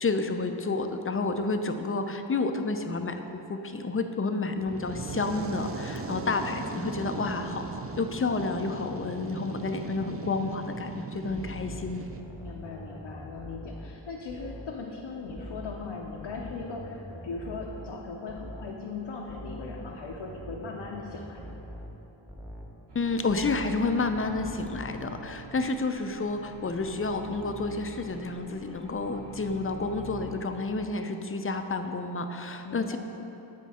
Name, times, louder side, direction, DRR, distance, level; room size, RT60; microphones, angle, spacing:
voice 1, 0.0-12.0 22.9-33.0, left 3 dB, 30° left, 7 dB, 0.4 m, -30 dB
Fire, 4.6-12.2, right 4 dB, 30° right, 0.4 m, -38 dB
voice 2, 9.8-10.6 12.4-21.4 32.6-33.0, left 4 dB, 80° left, -2 dB, 0.7 m, -39 dB
sound 1, 11.3-14.8 15.3-18.8 19.3-22.8 23.3-25.3, equal, ahead, 0.9 m, -43 dB
sound 2, 22.9-30.4, right 2 dB, 60° right, 1.0 m, -46 dB
8.3 x 4.5 x 4.2 m, 3.0 s
wide cardioid pair, 65°, 46 cm